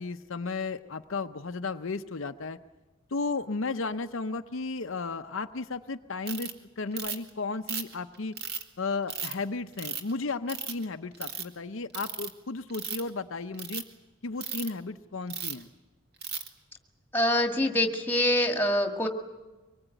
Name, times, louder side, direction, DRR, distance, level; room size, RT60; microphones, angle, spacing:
voice 1, 0.0-2.6 3.1-8.4 8.8-13.8 14.2-15.7, left 3 dB, 60° left, 7 dB, 0.7 m, -34 dB
Ratchet pawl, 6.3-6.5 7.0-7.3 7.7-8.6 9.1-9.3 9.8-10.1 10.5-10.8 11.1-11.4 11.9-12.3 12.7-13.1 13.5-13.8 14.4-14.7 15.3-15.6 16.2-16.5, right 7 dB, 50° right, 2.1 m, -35 dB
voice 2, 17.1-19.1, left 1 dB, 10° left, 5 dB, 1.9 m, -25 dB
24.5 x 21.0 x 9.1 m, 1.2 s
head